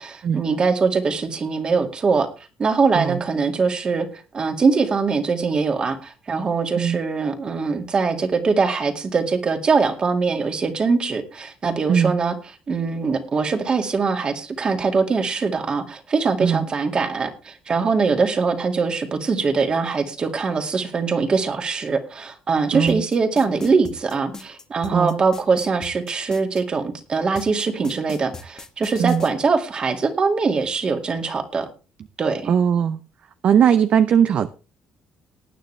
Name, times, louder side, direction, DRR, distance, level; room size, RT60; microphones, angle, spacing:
voice 1, 0.0-2.3 2.6-4.1 4.3-12.3 12.7-31.7 32.2-32.5, right 4 dB, 30° right, 2.1 m, -22 dB
voice 2, 22.7-23.0 24.9-25.2 29.0-29.2 32.5-33.0 33.4-34.5, right 8 dB, 50° right, 0.7 m, -19 dB
sound 1, 22.9-26.6 27.4-29.3, left 3 dB, 20° left, 1.4 m, -38 dB
18.5 x 9.4 x 3.3 m
cardioid pair, 130°, 3 cm